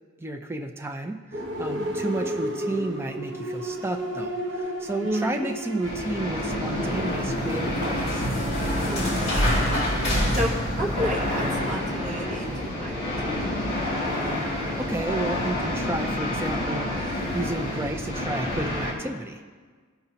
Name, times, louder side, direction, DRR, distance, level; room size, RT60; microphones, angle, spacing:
voice 1, 0.2-8.3 14.8-19.4, right 2 dB, 10° right, 4 dB, 0.4 m, -32 dB
sound 1, 1.3-10.0, equal, 60° right, 0.8 m, -33 dB
voice 2, 1.8-2.1 5.0-5.4 8.8-9.8 10.3-13.5, equal, 40° right, -1 dB, 1.0 m, -32 dB
sound 2, 5.8-18.9, left 1 dB, 50° left, 2.1 m, -29 dB
sound 3, 6.5-12.0, equal, 30° left, 2.5 m, -27 dB
16.0 x 5.7 x 2.8 m, 1.5 s
head